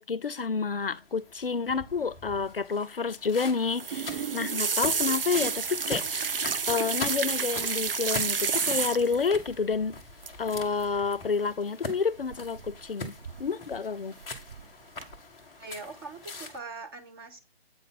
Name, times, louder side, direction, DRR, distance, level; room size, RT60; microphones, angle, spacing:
voice 1, 0.0-10.0 10.4-13.1 13.4-14.2, left 5 dB, 60° left, 0.6 m, -29 dB
sound 1, 0.8-16.6, left 3 dB, 5° left, 0.6 m, -43 dB
sound 2, 3.7-9.3 10.2-10.5 10.8-11.1 12.3-12.9 13.2-13.8 14.2-14.6 15.0-15.1, right 5 dB, 60° right, 0.7 m, -30 dB
voice 2, 15.6-17.4, right 3 dB, 25° right, 1.2 m, -42 dB
8.2 x 5.4 x 3.7 m
figure-of-eight pair, 145°, 32 cm